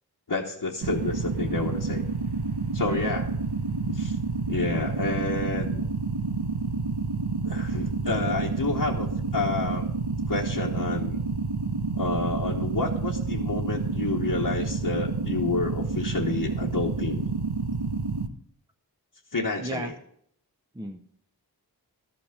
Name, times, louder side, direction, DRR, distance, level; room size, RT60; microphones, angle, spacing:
voice 1, 0.3-2.0 2.7-3.3 3.9-4.2 4.5-5.8 7.4-9.8 10.3-11.2 12.0-17.3 19.3-19.9, left 3 dB, 60° left, -2 dB, 1.2 m, -29 dB
sound 1, 0.8-18.3, right 4 dB, 75° right, 0.9 m, -29 dB
voice 2, 19.6-19.9 20.7-21.0, right 2 dB, 10° right, 5 dB, 0.7 m, -34 dB
13.0 x 5.9 x 6.6 m, 0.69 s
wide cardioid pair, 60°, 39 cm